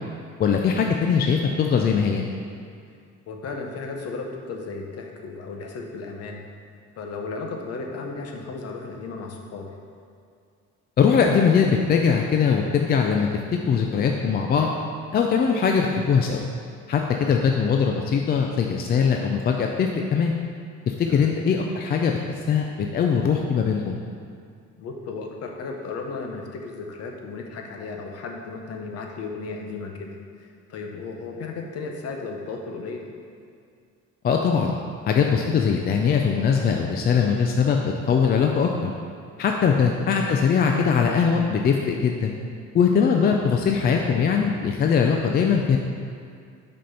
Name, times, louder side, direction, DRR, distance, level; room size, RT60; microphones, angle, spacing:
voice 1, 0.4-2.2 11.0-13.3 13.7-14.7 15.1-16.4 16.9-20.3 20.9-22.2 22.5-24.0 34.2-34.7 35.1-38.9 39.4-42.3 42.7-45.8, left 6 dB, 35° left, 2 dB, 0.4 m, -21 dB
voice 2, 3.3-6.4 7.0-9.7 17.2-17.3 21.1-21.3 24.8-33.1 39.6-39.8, left 4 dB, 55° left, 2 dB, 0.9 m, -35 dB
6.2 x 4.3 x 5.5 m, 2.3 s
cardioid pair, 140°, 29 cm